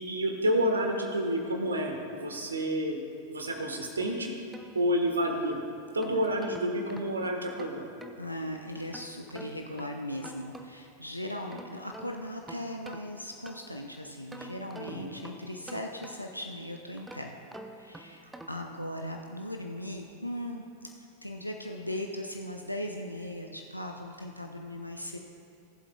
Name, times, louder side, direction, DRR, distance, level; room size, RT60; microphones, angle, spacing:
voice 1, 0.0-3.0 3.3-4.4 4.7-5.6 5.9-7.9 14.8-15.2, equal, 75° right, 3 dB, 1.3 m, -29 dB
sound 1, 4.0-5.4 5.8-8.2 8.9-11.0 11.3-13.8 14.3-16.5 17.0-18.7, right 2 dB, 10° right, 0.6 m, -48 dB
voice 2, 8.2-17.4 17.7-20.7 21.0-25.2, left 1 dB, 90° left, 2 dB, 0.5 m, -38 dB
18.5 x 7.6 x 2.3 m, 2.7 s
figure-of-eight pair, 90°, 0 cm